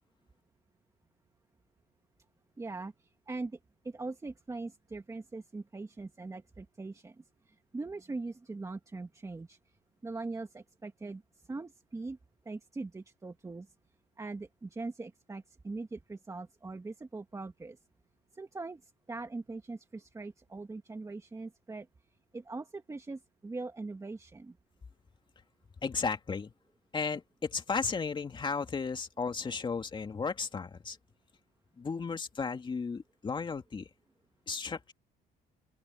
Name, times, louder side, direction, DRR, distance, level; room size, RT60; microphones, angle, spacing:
voice 1, 2.6-3.6 3.8-7.2 7.5-9.6 10.0-11.2 11.5-12.2 12.5-13.7 14.2-17.8 18.3-21.9 22.3-24.6, right 3 dB, 20° right, 2.1 m, -41 dB
voice 2, 25.8-26.5 26.9-31.0 31.8-33.9 34.5-34.9, left 5 dB, 30° left, 2.6 m, -34 dB
open air
cardioid pair, 110°, 17 cm